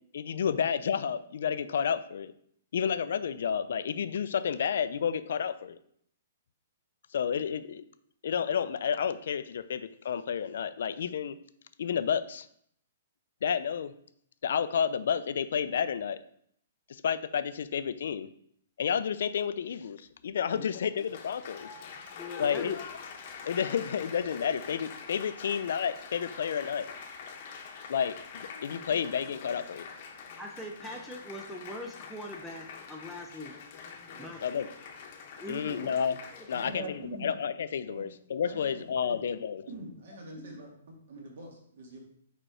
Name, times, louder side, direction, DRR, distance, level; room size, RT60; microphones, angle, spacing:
voice 1, 0.1-2.3 2.7-5.8 7.1-7.8 8.2-11.4 11.8-12.5 13.4-14.0 14.4-16.2 16.9-18.3 18.8-21.7 22.4-22.8 23.4-26.9 27.9-29.9 34.4-34.7 35.5-36.2 36.5-39.7, left 7 dB, 60° left, 13 dB, 0.4 m, -31 dB
Applause, 20.5-36.7, left 6 dB, 35° left, 0.9 m, -45 dB
voice 2, 22.1-22.8 30.4-33.5 34.1-34.4 35.4-35.9 40.4-40.6, equal, ahead, 0 dB, 0.4 m, -42 dB
voice 3, 36.5-37.3 37.9-38.0 38.4-39.2 39.7-40.7 41.1-42.0, right 2 dB, 55° right, 0 dB, 2.1 m, -43 dB
5.1 x 4.4 x 4.9 m, 0.67 s
hypercardioid pair, 170°, 0 cm